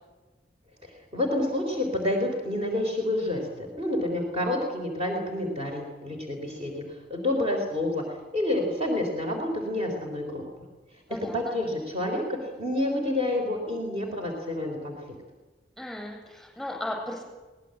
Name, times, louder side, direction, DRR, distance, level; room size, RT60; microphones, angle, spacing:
voice 1, 0.8-10.7 10.9-15.0, left 1 dB, 35° right, 1 dB, 3.8 m, -29 dB
voice 2, 11.1-11.5 15.8-17.2, left 1 dB, ahead, 0 dB, 7.5 m, -36 dB
23.0 x 18.5 x 7.9 m, 1.2 s
head